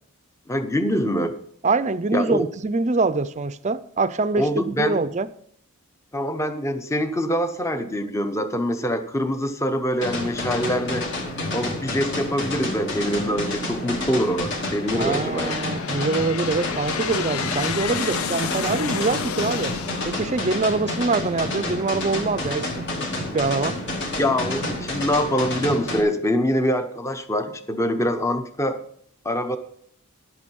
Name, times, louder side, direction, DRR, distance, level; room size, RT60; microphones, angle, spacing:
voice 1, 0.5-1.3 2.1-2.5 4.4-5.0 6.1-11.1 11.5-15.6 24.2-28.8 29.2-29.6, equal, 15° left, 0.7 m, -24 dB
voice 2, 1.6-5.3 14.9-19.7 20.0-22.7 23.3-23.8, right 3 dB, 30° right, 0.5 m, -24 dB
sound 1, 10.0-26.0, left 2 dB, 55° left, 2.2 m, -29 dB
Aircraft, 12.7-13.2 13.9-21.5, left 7 dB, 75° left, 0.5 m, -32 dB
11.5 x 8.5 x 5.3 m
head